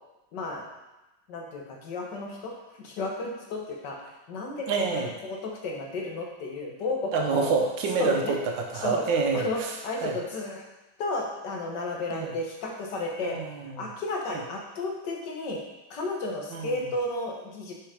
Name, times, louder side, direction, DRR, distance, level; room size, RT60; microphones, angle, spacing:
voice 1, 0.3-0.6 1.3-4.0 4.3-7.5 8.0-8.4 8.8-9.1 9.3-10.7 11.0-13.4 13.8-15.6 15.9-17.7, left 2 dB, 60° left, 0 dB, 1.6 m, -33 dB
voice 2, 4.7-5.1 7.1-10.1 12.1-12.4 13.2-13.8 16.5-16.8, right 4 dB, 70° right, 2 dB, 1.5 m, -28 dB
6.2 x 4.4 x 4.9 m, 1.0 s
omnidirectional pair, 2.3 m